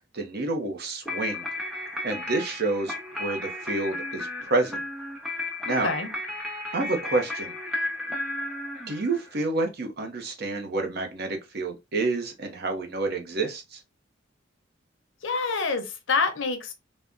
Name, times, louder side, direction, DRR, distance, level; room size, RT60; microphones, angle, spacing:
voice 1, 0.1-1.5 2.0-4.8 5.7-5.9 6.7-7.5 8.9-13.8, right 3 dB, 55° right, 0.6 m, -29 dB
sound 1, 1.1-9.4, left 2 dB, 5° right, 0.7 m, -34 dB
voice 2, 5.7-6.1 15.2-16.7, left 4 dB, 75° left, 0.7 m, -27 dB
3.4 x 2.1 x 2.5 m
head